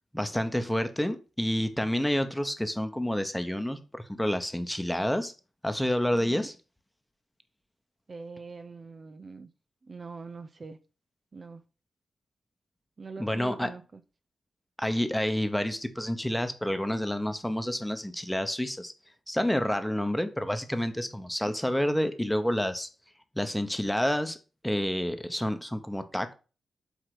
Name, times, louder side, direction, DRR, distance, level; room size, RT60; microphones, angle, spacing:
voice 1, 0.1-5.3 5.6-6.6 13.2-13.7 14.8-18.9 19.3-22.9 23.3-24.4 24.6-26.3, left 1 dB, 5° left, 1.0 m, -29 dB
voice 2, 6.1-6.5 8.1-9.5 9.8-10.8 11.3-11.6 13.0-14.0, right 4 dB, 45° right, 0.5 m, -43 dB
8.0 x 2.9 x 6.0 m
cardioid pair, 65°, 0 cm